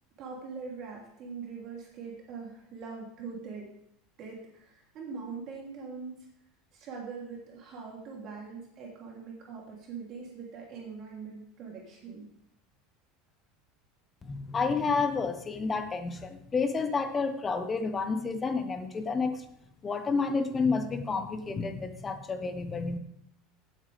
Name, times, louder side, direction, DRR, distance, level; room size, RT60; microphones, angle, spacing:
voice 1, 0.2-3.7 4.2-6.3 6.7-12.3, right 5 dB, 40° right, -2 dB, 3.1 m, -42 dB
voice 2, 14.2-19.4 19.8-23.0, left 4 dB, 15° left, 8 dB, 1.1 m, -30 dB
17.0 x 8.8 x 3.5 m, 0.74 s
supercardioid pair, 160°, 0 cm